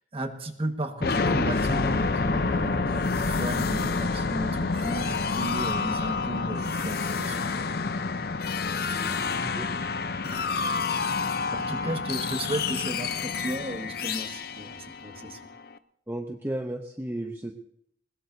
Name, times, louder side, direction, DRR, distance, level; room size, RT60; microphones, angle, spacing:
voice 1, 0.1-7.5 10.2-10.5 11.2-15.4, right 1 dB, 30° right, 5 dB, 1.5 m, -35 dB
sound 1, 1.0-15.7, left 4 dB, 55° left, 0.6 m, -28 dB
voice 2, 9.0-9.7 16.1-17.5, right 1 dB, 10° right, 3 dB, 0.8 m, -34 dB
21.0 x 20.5 x 2.7 m, 0.69 s
head